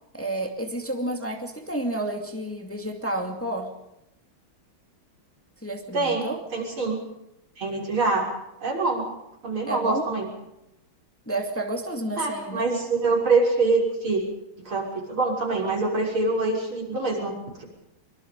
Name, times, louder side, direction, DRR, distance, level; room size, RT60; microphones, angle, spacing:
voice 1, 0.1-3.7 5.6-6.4 9.7-10.1 11.3-12.7, right 1 dB, 5° left, 3 dB, 2.4 m, -30 dB
voice 2, 5.9-6.3 6.5-7.0 7.6-8.3 8.6-9.0 9.4-10.3 12.2-14.2 14.7-17.6, right 3 dB, 85° right, -1 dB, 7.0 m, -25 dB
24.5 x 24.5 x 5.4 m, 0.86 s
omnidirectional pair, 2.2 m